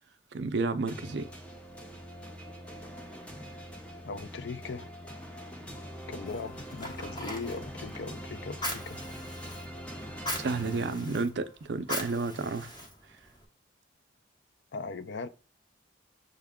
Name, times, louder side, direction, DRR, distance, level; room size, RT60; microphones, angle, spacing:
voice 1, 0.3-1.3 10.3-12.8, right 4 dB, 60° right, 0.4 m, -31 dB
sound 1, 0.9-11.5, equal, 5° left, 0.6 m, -43 dB
voice 2, 4.0-4.9 6.1-9.0 10.5-11.3 14.7-15.3, left 4 dB, 65° left, 0.4 m, -40 dB
Fire, 6.3-13.4, left 1 dB, 20° left, 0.9 m, -41 dB
6.5 x 2.2 x 3.5 m
head